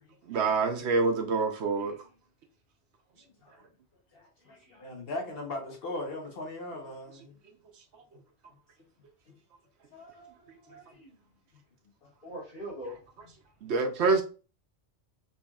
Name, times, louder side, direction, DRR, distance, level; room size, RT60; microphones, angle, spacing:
voice 1, 0.3-1.9 13.6-14.2, right 4 dB, 70° right, 0.9 m, -26 dB
voice 2, 4.1-7.4 10.7-10.8, left 2 dB, 55° left, 1.2 m, -39 dB
voice 3, 9.9-11.1 12.2-12.9, right 1 dB, 35° left, 1.5 m, -44 dB
4.1 x 3.0 x 2.3 m
omnidirectional pair, 1.2 m